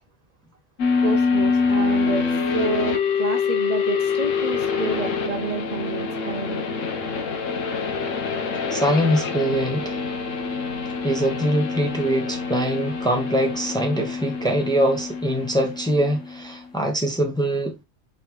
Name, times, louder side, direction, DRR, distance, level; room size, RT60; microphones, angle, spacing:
sound 1, 0.8-16.5, left 5 dB, 85° left, 1.2 m, -25 dB
voice 1, 1.0-6.7, right 5 dB, 45° right, 0.5 m, -29 dB
voice 2, 8.7-10.0 11.0-17.7, equal, 5° left, 0.7 m, -23 dB
4.8 x 3.1 x 3.3 m
omnidirectional pair, 1.3 m